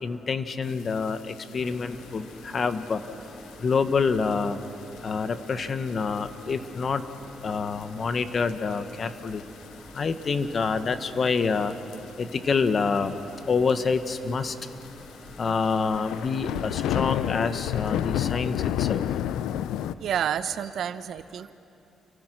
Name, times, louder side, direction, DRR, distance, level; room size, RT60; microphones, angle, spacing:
voice 1, 0.0-3.0 3.6-4.6 5.0-7.0 7.4-9.4 9.9-11.7 12.2-13.2 13.5-14.5 15.4-19.0, left 5 dB, 45° left, 10 dB, 1.3 m, -27 dB
sound 1, 1.3-1.4 1.7-2.0 2.7-2.9 3.5-3.6 4.2-4.3 4.6-4.7 5.0-5.1 6.2-6.4 6.8-6.9 7.8-7.9 8.5-8.9 9.3-9.4 10.0-10.6 11.7-12.0 12.3-12.4 12.7-12.8 13.0-13.1 13.7-13.8 14.1-14.2 14.8-19.9, left 11 dB, 90° left, 0.5 m, -29 dB
sound 2, 1.6-17.1, left 1 dB, 25° left, 5.4 m, -48 dB
voice 2, 20.0-21.5, right 9 dB, 70° right, 12 dB, 0.9 m, -29 dB
29.5 x 24.0 x 6.3 m, 2.8 s
cardioid pair, 90°, 0 cm